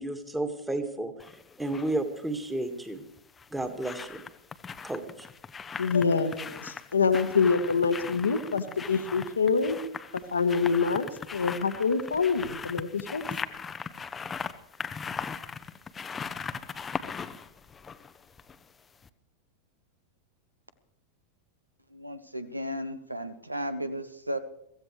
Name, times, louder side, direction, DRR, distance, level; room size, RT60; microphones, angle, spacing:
voice 1, 0.0-3.0 3.5-4.2 4.8-5.3, right 2 dB, 5° right, 7 dB, 1.8 m, -32 dB
sound 1, 1.2-1.9 3.2-18.7 19.0-19.1, left 6 dB, 20° left, 0.7 m, -39 dB
voice 2, 5.8-9.8 10.3-11.1 11.3-13.3, left 5 dB, 75° left, 8 dB, 1.2 m, -26 dB
voice 3, 21.9-24.4, equal, 85° right, 13 dB, 0.9 m, -34 dB
23.0 x 15.0 x 3.3 m, 0.78 s
figure-of-eight pair, 90°, 0 cm